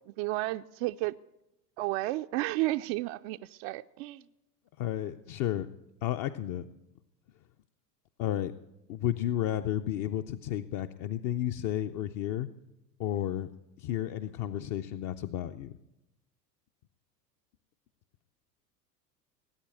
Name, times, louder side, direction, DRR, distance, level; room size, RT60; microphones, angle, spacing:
voice 1, 0.1-1.1 1.8-4.2, right 18 dB, 45° right, 0.4 m, -32 dB
voice 2, 4.8-5.7 6.0-6.6 8.2-8.5 8.9-12.5 13.0-13.5 13.8-15.7, left 12 dB, 40° left, 0.7 m, -32 dB
18.5 x 8.6 x 8.5 m
hypercardioid pair, 85°, 49 cm